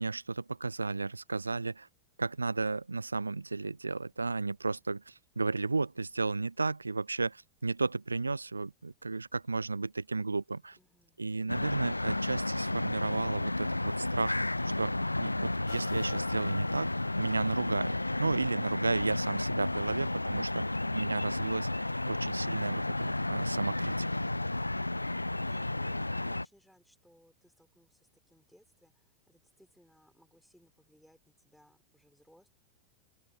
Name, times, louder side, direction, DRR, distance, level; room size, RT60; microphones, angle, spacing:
voice 1, 0.0-1.9 2.2-10.8 11.2-14.4 14.6-21.7 22.1-24.3, right 3 dB, 80° right, 0.3 m, -33 dB
voice 2, 10.8-11.9 25.4-32.5, equal, ahead, 3.8 m, -64 dB
sound 1, 11.5-26.4, left 2 dB, 85° left, 0.3 m, -32 dB
sound 2, 15.7-23.3 23.9-24.0, left 13 dB, 60° left, 1.9 m, -57 dB
open air
figure-of-eight pair, 90°, 0 cm